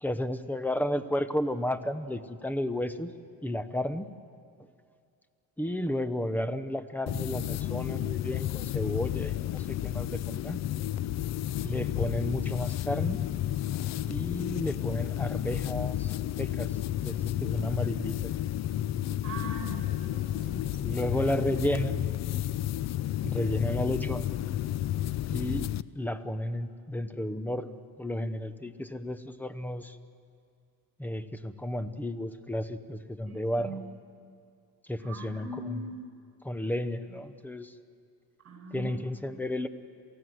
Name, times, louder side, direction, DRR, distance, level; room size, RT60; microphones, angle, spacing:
voice 1, 0.0-3.1 3.4-4.1 5.6-10.6 11.6-13.2 14.1-18.3 20.8-22.0 23.2-24.3 25.3-30.0 31.0-33.8 34.8-35.9 36.4-37.7 38.7-39.7, left 1 dB, 5° left, 12 dB, 0.8 m, -32 dB
sound 1, 7.1-25.8, left 13 dB, 45° left, 0.5 m, -31 dB
voice 2, 19.2-21.0 33.3-33.7 35.0-36.0 38.4-39.0, right 1 dB, 40° right, 1 dB, 7.4 m, -41 dB
28.0 x 16.0 x 7.9 m, 2.3 s
cardioid pair, 125°, 37 cm